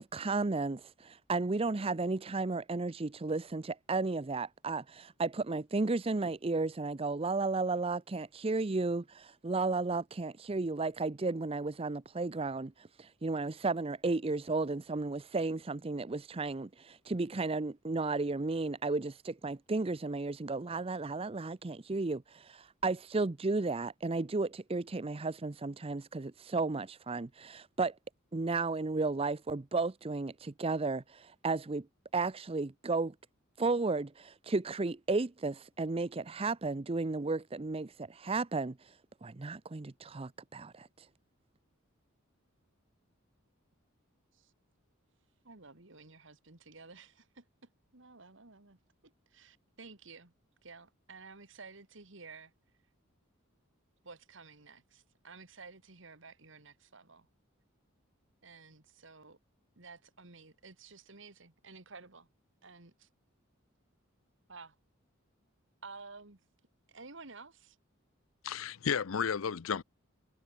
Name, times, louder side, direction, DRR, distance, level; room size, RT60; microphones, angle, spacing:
voice 1, 0.0-27.9 28.3-31.9 32.1-33.1 33.6-38.9 39.2-41.1, right 3 dB, 30° right, 0.6 m, -33 dB
voice 2, 45.4-48.8 49.0-50.3 50.6-52.5 54.0-57.3 58.4-59.4 59.8-62.3 62.6-63.1 64.5-64.8 65.8-66.4 66.9-67.8, right 4 dB, 65° right, 2.3 m, -53 dB
voice 3, 68.5-69.8, left 7 dB, 90° left, 0.6 m, -32 dB
head